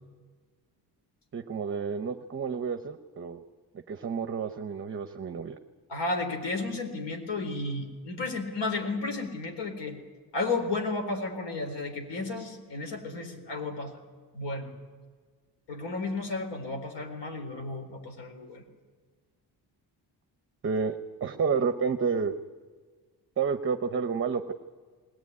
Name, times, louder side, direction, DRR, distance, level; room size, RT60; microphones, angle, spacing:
voice 1, 1.3-3.4 3.9-5.6 20.6-22.3 23.4-24.5, right 5 dB, 30° right, 8 dB, 0.7 m, -30 dB
voice 2, 5.9-10.0 10.3-14.0 14.3-14.7 15.7-18.6, left 3 dB, 85° left, 5 dB, 4.1 m, -33 dB
20.5 x 19.0 x 9.5 m, 1.6 s
wide cardioid pair, 180°, 41 cm